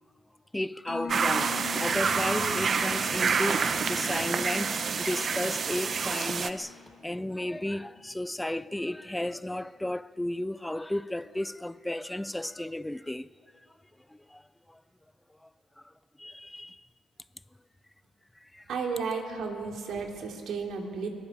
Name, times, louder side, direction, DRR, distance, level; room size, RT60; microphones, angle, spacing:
voice 1, 0.5-13.3 14.1-14.4 14.7-14.8 15.4-15.5 16.2-16.8 18.4-18.6, left 1 dB, 10° left, 0.4 m, -34 dB
Mallet percussion, 0.9-7.9, left 9 dB, 80° left, 2.8 m, -43 dB
sound 1, 1.1-6.5, right 5 dB, 45° right, 0.9 m, -28 dB
voice 2, 18.7-21.1, right 5 dB, 70° right, 2.9 m, -33 dB
23.5 x 18.5 x 7.2 m
cardioid pair, 90°, 0 cm